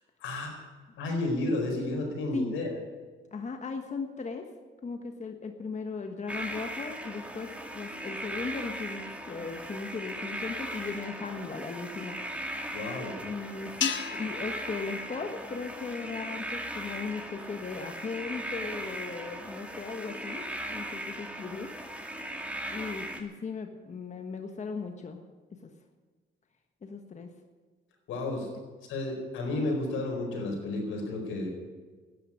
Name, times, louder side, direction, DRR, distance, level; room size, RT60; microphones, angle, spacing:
voice 1, 0.2-0.6 1.0-2.7 12.7-13.2 28.1-28.5 28.9-31.5, left 2 dB, 85° left, 2 dB, 4.5 m, -32 dB
voice 2, 3.3-4.5 4.8-12.2 12.6-12.8 13.2-20.4 20.7-21.7 22.7-25.2 25.6-25.7 26.8-27.3, left 4 dB, 35° left, 5 dB, 1.4 m, -37 dB
sound 1, 6.3-23.2, right 1 dB, 5° right, 2.2 m, -38 dB
sound 2, 13.8-16.2, left 9 dB, 70° left, 1.2 m, -36 dB
12.5 x 10.0 x 9.8 m, 1.4 s
cardioid pair, 90°, 20 cm